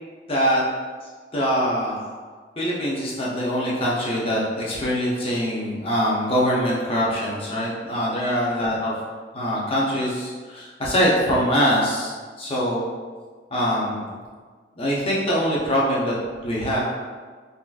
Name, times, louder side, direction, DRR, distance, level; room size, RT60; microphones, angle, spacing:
voice 1, 0.3-0.6 1.3-2.1 2.6-9.0 9.3-12.1 12.4-12.8 13.5-14.2 14.8-16.1 16.4-16.8, equal, 30° left, -5 dB, 0.6 m, -23 dB
3.7 x 2.3 x 2.3 m, 1.5 s
head